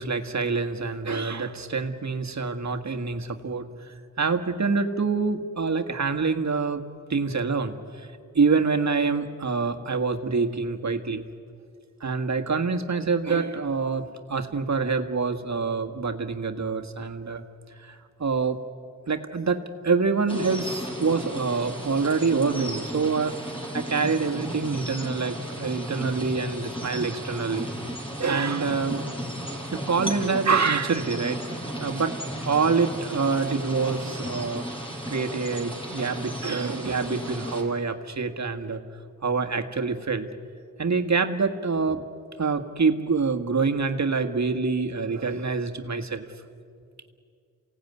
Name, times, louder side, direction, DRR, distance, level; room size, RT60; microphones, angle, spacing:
voice 1, 0.0-6.8 7.1-8.1 8.3-11.2 12.0-17.4 17.8-18.6 19.1-23.3 23.7-27.7 28.2-29.0 29.7-31.4 31.8-32.2 32.4-34.7 35.1-38.8 39.2-40.3 40.8-42.0 42.4-46.2, right 4 dB, 55° right, 5 dB, 1.7 m, -26 dB
sound 1, 20.3-37.6, right 1 dB, 15° left, 6.0 m, -35 dB
27.5 x 17.5 x 9.6 m, 2.4 s
cardioid pair, 50°, 33 cm